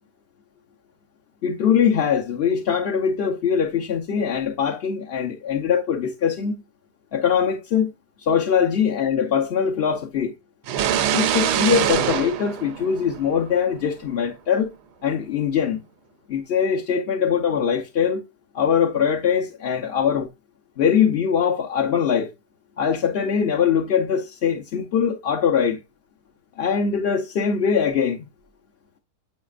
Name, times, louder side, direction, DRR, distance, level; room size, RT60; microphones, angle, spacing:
voice 1, 1.4-6.5 7.1-7.9 8.2-10.3 11.1-14.7 15.0-15.8 16.3-18.2 18.5-20.3 20.8-22.3 22.8-25.8 26.6-28.2, left 7 dB, 45° left, 0.9 m, -22 dB
sound 1, 10.7-13.5, right 10 dB, 80° right, 1.2 m, -23 dB
9.4 x 5.8 x 2.5 m
omnidirectional pair, 1.7 m